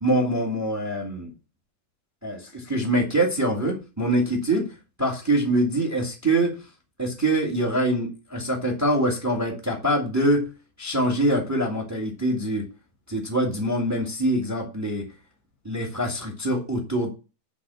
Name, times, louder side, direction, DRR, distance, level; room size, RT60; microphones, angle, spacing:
voice 1, 0.0-1.3 2.2-4.7 5.0-6.6 7.0-10.5 10.8-12.7 13.1-15.1 15.6-17.1, right 1 dB, 10° right, 1 dB, 0.9 m, -24 dB
10.0 x 4.2 x 7.0 m, 0.30 s
omnidirectional pair, 4.8 m